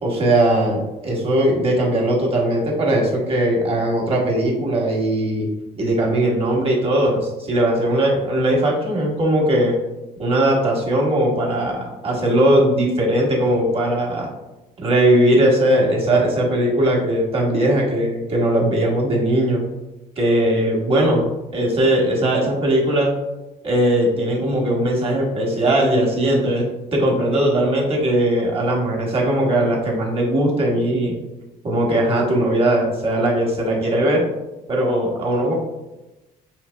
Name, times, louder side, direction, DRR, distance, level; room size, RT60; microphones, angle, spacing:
voice 1, 0.0-5.5 5.7-9.7 10.2-11.8 12.0-14.3 14.8-19.6 20.2-23.1 23.6-26.6 26.9-31.1 31.6-34.2 34.7-35.5, right 1 dB, 35° right, -2 dB, 1.2 m, -19 dB
5.6 x 2.9 x 2.2 m, 1.0 s
cardioid pair, 110°, 17 cm